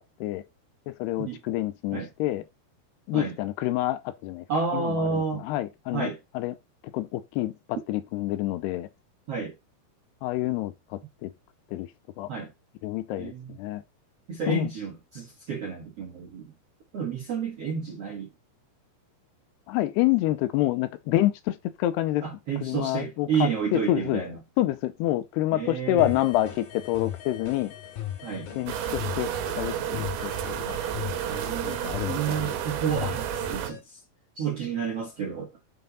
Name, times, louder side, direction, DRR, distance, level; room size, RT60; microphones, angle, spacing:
voice 1, 0.9-2.4 3.1-4.4 4.7-6.5 6.9-7.5 7.9-8.9 10.2-11.3 11.7-11.9 12.2-12.3 12.8-13.3 13.6-13.8 14.5-14.7 19.7-22.3 22.6-24.2 24.6-27.7 28.6-30.8 31.6-32.5, left 15 dB, 80° left, 2.5 m, -28 dB
voice 2, 4.5-5.4 5.9-6.2 9.3-9.5 12.3-12.5 13.2-13.6 14.3-16.5 16.9-18.3 22.2-24.4 25.5-26.1 28.2-28.5 31.3-34.0 34.3-35.5, right 6 dB, 60° right, 1.6 m, -31 dB
sound 1, 26.0-33.8, left 11 dB, 65° left, 3.3 m, -38 dB
sound 2, 28.7-33.7, right 10 dB, 90° right, 3.2 m, -31 dB
6.7 x 5.6 x 4.0 m
omnidirectional pair, 5.1 m